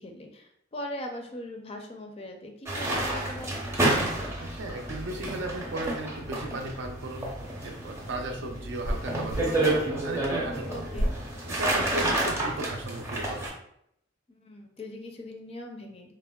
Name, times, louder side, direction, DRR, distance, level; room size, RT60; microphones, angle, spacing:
voice 1, 0.0-3.6 10.7-11.1 14.3-16.1, left 1 dB, 30° left, 3 dB, 0.4 m, -40 dB
sound 1, 2.7-13.5, right 1 dB, 15° right, 0.6 m, -30 dB
voice 2, 4.4-7.3 7.6-10.7 11.4-13.5, right 2 dB, 70° right, 3 dB, 0.5 m, -36 dB
sound 2, 7.6-9.5 10.9-11.2 11.9-12.5, equal, 80° left, 0.6 m, -32 dB
3.5 x 2.0 x 2.2 m, 0.73 s
head